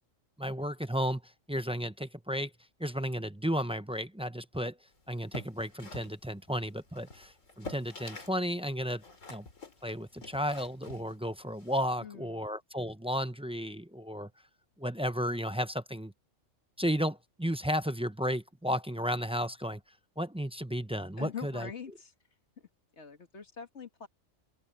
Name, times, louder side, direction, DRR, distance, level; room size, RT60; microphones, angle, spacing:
voice 1, 0.4-2.5 2.8-4.8 5.1-9.0 9.3-9.5 9.8-14.3 14.8-16.1 16.8-19.8 20.2-21.7, equal, 5° right, 0.5 m, -33 dB
sound 1, 5.1-8.4 8.7-11.8, left 2 dB, 70° left, 3.2 m, -47 dB
voice 2, 12.0-12.4 21.2-22.1 22.6-24.1, left 7 dB, 55° left, 2.1 m, -44 dB
open air
omnidirectional pair, 1.4 m